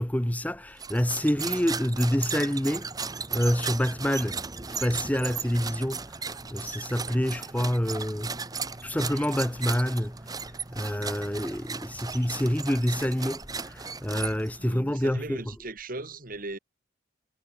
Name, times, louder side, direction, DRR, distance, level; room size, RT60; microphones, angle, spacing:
voice 1, 0.0-2.9 3.3-4.4 4.7-8.3 8.8-10.4 10.7-15.4, equal, 10° left, 1.0 m, -27 dB
sound 1, 0.8-14.7, right 5 dB, 20° right, 1.2 m, -36 dB
voice 2, 14.6-16.6, right 2 dB, 45° right, 2.5 m, -37 dB
head